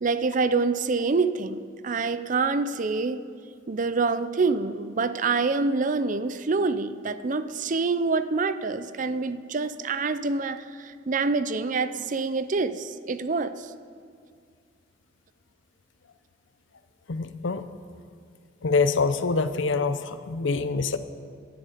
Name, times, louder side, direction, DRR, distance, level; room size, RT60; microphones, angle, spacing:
voice 1, 0.0-3.2 3.7-13.7, right 4 dB, 45° right, 12 dB, 0.5 m, -26 dB
voice 2, 17.1-17.6 18.6-21.0, left 4 dB, 90° left, 12 dB, 0.7 m, -25 dB
17.0 x 10.5 x 5.0 m, 2.2 s
head